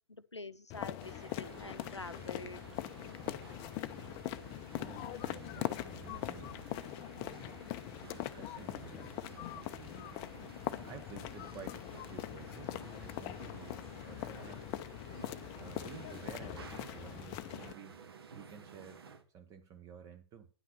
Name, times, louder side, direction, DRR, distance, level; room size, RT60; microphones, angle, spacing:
voice 1, 0.1-2.6, left 3 dB, 85° left, 0.7 m, -46 dB
sound 1, 0.7-17.7, left 14 dB, 25° left, 0.5 m, -42 dB
sound 2, 1.0-19.2, right 6 dB, 60° right, 1.5 m, -53 dB
voice 2, 4.7-7.6 8.0-10.0 10.7-14.6 15.5-18.0 18.3-19.0 19.3-20.5, right 8 dB, 20° right, 0.8 m, -52 dB
10.0 x 5.8 x 6.7 m
figure-of-eight pair, 110°, 14 cm